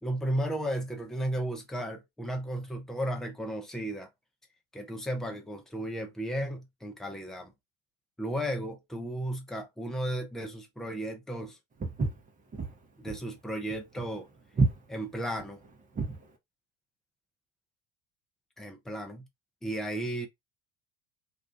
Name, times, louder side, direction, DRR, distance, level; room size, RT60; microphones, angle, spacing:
voice 1, 0.0-4.1 4.7-7.5 8.2-11.6 13.0-14.3 14.9-15.6 18.6-19.3 19.6-20.3, right 1 dB, ahead, 0.6 m, -34 dB
Walk footsteps, 11.8-16.3, right 3 dB, 25° right, 0.9 m, -30 dB
2.5 x 2.3 x 2.4 m
hypercardioid pair, 70°, 32 cm